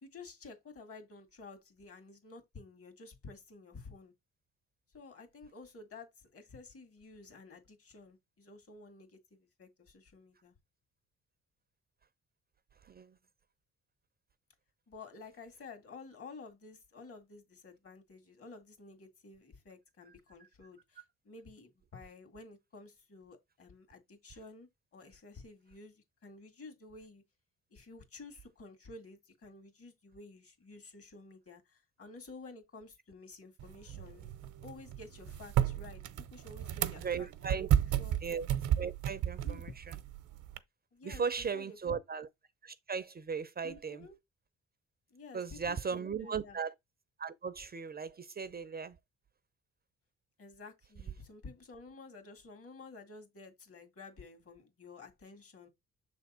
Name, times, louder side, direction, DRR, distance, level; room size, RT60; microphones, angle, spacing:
voice 1, 0.0-4.1 4.9-10.5 14.9-27.2 27.7-34.3 34.6-37.7 38.0-38.2 39.4-39.6 40.9-42.0 43.6-44.2 45.1-46.6 50.4-55.7, left 3 dB, 50° left, 2.0 m, -52 dB
voice 2, 12.8-13.2 37.0-37.7 38.2-38.5 38.8-39.7 41.0-42.3 42.6-44.1 45.3-46.7 47.2-49.0, right 6 dB, 30° right, 0.5 m, -37 dB
sound 1, 33.6-40.6, right 11 dB, 75° right, 0.7 m, -33 dB
6.5 x 3.4 x 4.2 m
cardioid pair, 90°, 30 cm